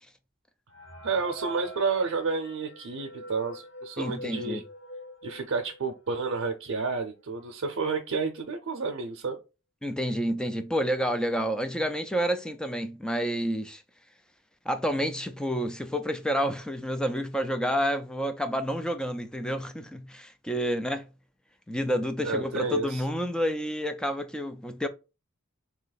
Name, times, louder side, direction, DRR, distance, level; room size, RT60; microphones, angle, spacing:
sound 1, 0.7-6.1 6.6-6.7 6.9-7.0 7.8-7.9 8.2-8.6, right 1 dB, 75° left, 1.4 m, -45 dB
voice 1, 1.0-4.6 5.2-9.4 22.2-23.0, right 4 dB, 85° right, 0.6 m, -30 dB
voice 2, 4.0-4.6 9.8-13.8 14.7-21.1 21.7-24.9, equal, 5° left, 0.4 m, -29 dB
3.0 x 2.8 x 4.0 m
head